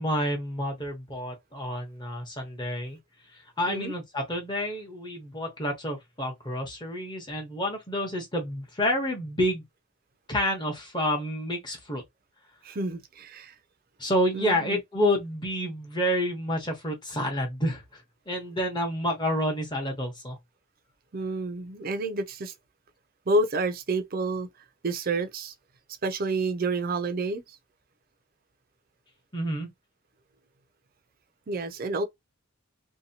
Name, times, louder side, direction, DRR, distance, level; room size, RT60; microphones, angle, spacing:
voice 1, 0.0-3.0 3.6-9.6 10.3-12.0 14.0-18.0 18.3-20.4 29.3-29.7, equal, 20° left, 0.9 m, -29 dB
voice 2, 12.6-13.5 14.3-14.8 21.1-22.5 23.3-24.5 24.8-25.5 26.0-27.4 31.5-32.0, right 2 dB, 45° right, 0.4 m, -29 dB
2.8 x 2.2 x 2.8 m
head